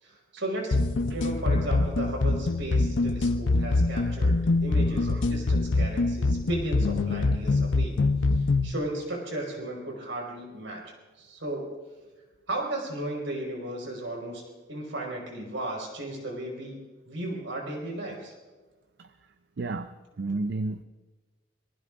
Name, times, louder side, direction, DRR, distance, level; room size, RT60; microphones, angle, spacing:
voice 1, 0.0-0.8 1.1-8.0 8.3-10.8 11.2-11.7 12.5-14.4 14.7-18.4, right 1 dB, 85° right, -1 dB, 5.0 m, -35 dB
sound 1, 0.7-8.7, left 3 dB, 75° left, 0.6 m, -24 dB
voice 2, 19.6-20.8, right 3 dB, 60° right, 10 dB, 0.5 m, -32 dB
26.5 x 19.5 x 2.5 m, 1.2 s
head